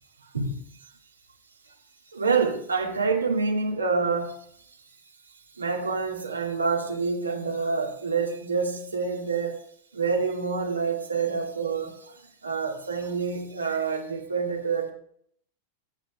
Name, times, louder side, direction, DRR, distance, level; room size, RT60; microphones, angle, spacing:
voice 1, 2.1-4.4 5.6-9.6 9.9-12.1 12.4-14.9, right 4 dB, 75° right, 1.8 m, -27 dB
24.0 x 8.5 x 2.3 m
figure-of-eight pair, 90°, 0 cm